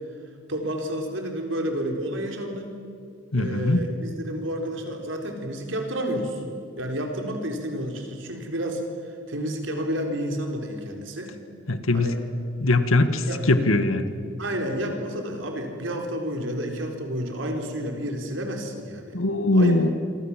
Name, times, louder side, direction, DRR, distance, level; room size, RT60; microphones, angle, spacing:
voice 1, 0.5-2.7 3.3-6.4 6.8-8.8 9.3-11.4 11.9-12.2 13.3-13.4 14.4-19.3 19.5-19.7, equal, 70° right, 3 dB, 4.2 m, -30 dB
voice 2, 3.3-3.8 11.7-12.1 12.6-14.2 19.1-19.9, left 2 dB, 90° left, 10 dB, 1.8 m, -21 dB
27.5 x 24.0 x 7.5 m, 2.4 s
head